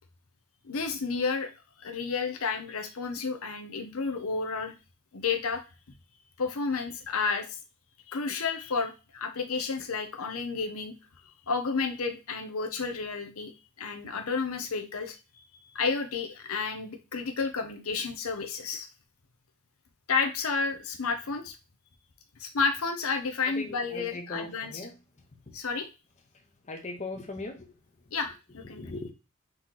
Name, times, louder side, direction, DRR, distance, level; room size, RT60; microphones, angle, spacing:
voice 1, 0.7-1.5 1.8-4.7 5.1-5.6 6.4-7.6 8.1-10.9 11.5-13.5 13.8-15.2 15.7-18.9 20.1-21.5 22.4-24.9 25.5-25.9 28.1-29.0, left 4 dB, 80° left, 6 dB, 0.8 m, -31 dB
voice 2, 23.9-24.9 26.7-27.7 28.7-29.1, left 2 dB, 30° left, 4 dB, 0.7 m, -38 dB
4.2 x 3.0 x 3.7 m, 0.28 s
head